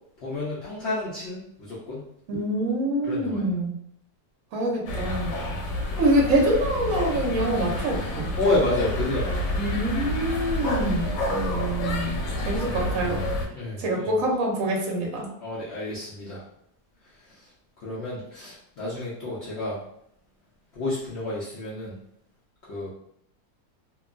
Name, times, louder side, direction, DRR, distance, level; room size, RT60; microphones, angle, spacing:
voice 1, 0.2-2.0 3.0-3.5 5.5-5.6 8.4-9.6 13.5-14.2 15.4-16.4 17.2-17.5 17.8-19.8 20.7-22.0 22.7-22.9, left 2 dB, 90° left, -7 dB, 0.5 m, -30 dB
voice 2, 2.3-3.7 4.5-5.3 6.0-8.3 9.5-12.2 12.5-13.2 13.8-15.3, right 1 dB, 60° right, -1 dB, 0.9 m, -25 dB
sound 1, 4.9-13.5, left 1 dB, 70° left, 1.1 m, -29 dB
2.9 x 2.2 x 2.5 m, 0.71 s
omnidirectional pair, 2.0 m